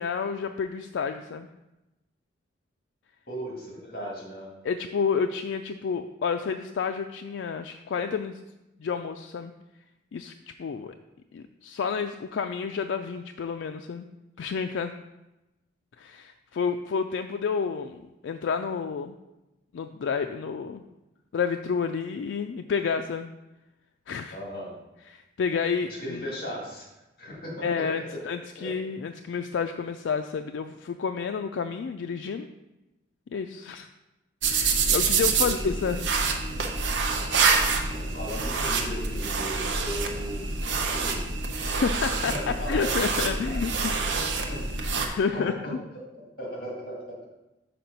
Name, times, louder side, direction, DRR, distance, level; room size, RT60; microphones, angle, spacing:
voice 1, 0.0-1.5 4.6-8.4 8.8-9.5 10.1-10.3 10.6-10.9 11.3-14.1 14.4-14.9 16.0-19.1 19.7-20.8 21.3-23.3 24.1-24.4 25.1-26.2 27.6-32.5 33.3-33.9 34.5-36.1 41.7-43.9 44.8-45.8, left 6 dB, 75° left, 7 dB, 0.3 m, -30 dB
voice 2, 3.3-4.5 24.3-24.8 25.9-26.9 27.2-28.3 28.6-28.7 35.4-36.0 37.9-41.2 42.3-43.6 44.1-46.1 46.4-47.3, equal, 50° left, -2 dB, 2.0 m, -37 dB
sound 1, 34.4-45.1, right 4 dB, 75° right, 0.8 m, -27 dB
5.9 x 4.7 x 5.3 m, 0.99 s
head